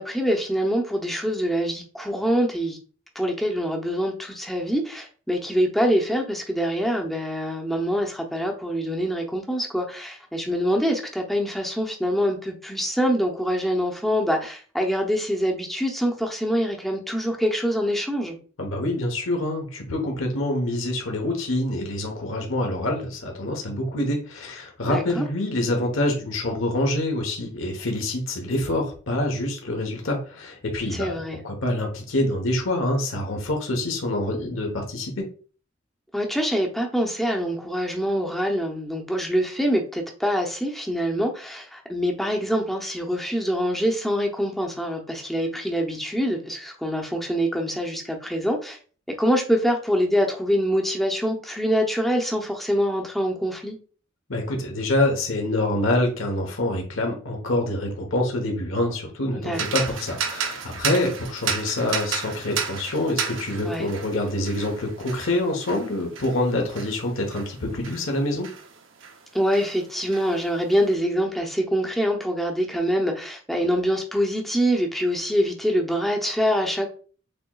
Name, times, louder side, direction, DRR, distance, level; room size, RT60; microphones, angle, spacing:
voice 1, 0.0-2.8 3.1-18.4 24.9-25.3 30.9-31.4 36.1-48.8 49.2-53.8 59.3-59.6 63.6-63.9 69.3-76.9, equal, ahead, 1 dB, 0.7 m, -25 dB
voice 2, 18.6-31.2 31.4-35.3 54.3-68.5, left 1 dB, 75° left, 2 dB, 1.1 m, -26 dB
sound 1, 59.5-69.2 69.5-70.8, right 7 dB, 65° right, 0.7 m, -33 dB
6.7 x 3.0 x 2.4 m, 0.40 s
head